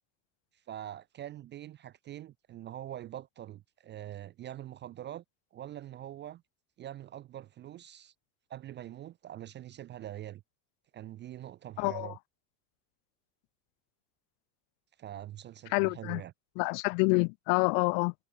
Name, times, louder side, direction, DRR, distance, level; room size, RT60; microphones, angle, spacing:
voice 1, 0.7-5.2 5.5-6.4 6.8-8.1 8.5-10.4 10.9-12.2 15.0-16.3, right 12 dB, 25° right, 0.3 m, -44 dB
voice 2, 11.8-12.1 15.7-16.2 16.6-18.1, left 40 dB or more, 75° left, 0.8 m, -27 dB
cardioid pair, 155°, 48 cm